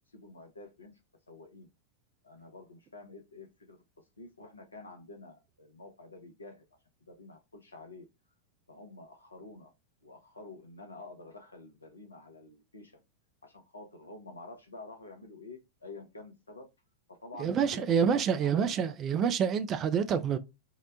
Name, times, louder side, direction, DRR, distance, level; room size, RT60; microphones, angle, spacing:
voice 1, 0.1-1.0 1.3-1.7 2.2-3.8 4.2-6.7 7.1-8.1 8.7-9.7 10.0-13.0 13.4-16.7 17.1-19.0, left 2 dB, 80° left, 0.5 m, -49 dB
voice 2, 17.4-20.4, right 7 dB, 30° right, 0.3 m, -27 dB
2.7 x 2.1 x 2.3 m
figure-of-eight pair, 90°, 0 cm